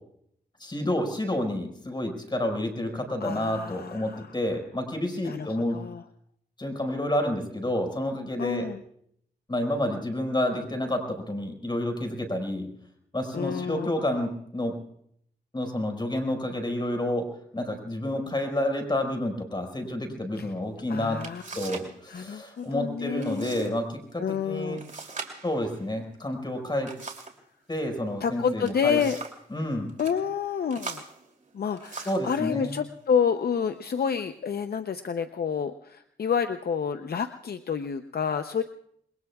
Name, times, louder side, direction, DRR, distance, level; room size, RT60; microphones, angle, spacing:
voice 1, 0.6-5.8 6.6-8.7 9.5-12.7 13.1-14.8 15.5-17.3 17.5-21.2 21.5-24.8 25.4-26.9 27.7-29.0 29.5-29.9 32.1-32.7, left 1 dB, 25° left, 3 dB, 5.2 m, -29 dB
voice 2, 3.2-4.3 5.2-6.0 8.4-8.8 13.3-13.9 20.4-20.5 20.9-21.4 21.7-23.8 24.2-24.8 28.2-29.2 30.0-31.0 31.5-38.6, left 7 dB, 60° left, 8 dB, 0.7 m, -29 dB
sound 1, 20.7-20.8 21.2-22.0 22.2-22.7 23.2-23.7 24.0-24.1 24.8-27.4 28.4-29.5 29.9-30.2 30.7-32.3 33.1-33.3 33.8-34.3, right 4 dB, 45° right, 2.9 m, -41 dB
28.0 x 21.5 x 2.4 m, 0.68 s
cardioid pair, 65°, 18 cm